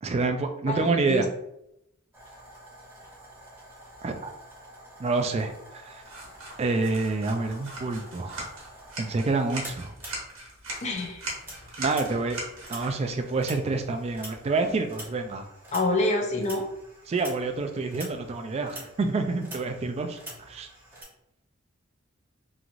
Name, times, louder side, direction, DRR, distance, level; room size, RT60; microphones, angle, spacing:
voice 1, 0.0-1.3 4.0-4.3 5.0-6.0 6.6-8.5 9.0-9.9 11.8-12.4 12.7-15.5 17.1-20.7, right 3 dB, 30° right, 6 dB, 0.3 m, -28 dB
voice 2, 0.7-1.2 10.8-11.2 15.7-16.7, left 2 dB, 35° left, 1 dB, 0.5 m, -27 dB
sound 1, 2.1-10.8 11.0-21.0, right 1 dB, 10° right, 0.8 m, -47 dB
sound 2, 6.0-15.1, right 2 dB, 85° right, 1.0 m, -41 dB
3.0 x 2.5 x 2.5 m, 0.80 s
head